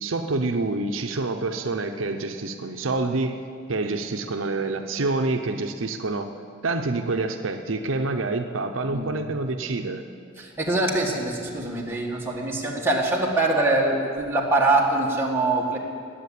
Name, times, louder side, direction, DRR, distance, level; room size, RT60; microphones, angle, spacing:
voice 1, 0.0-3.4 3.7-6.4 6.6-10.0, right 3 dB, 75° right, 6 dB, 0.7 m, -27 dB
voice 2, 10.4-15.8, right 2 dB, 10° right, -3 dB, 2.0 m, -23 dB
19.0 x 7.5 x 8.5 m, 2.4 s
head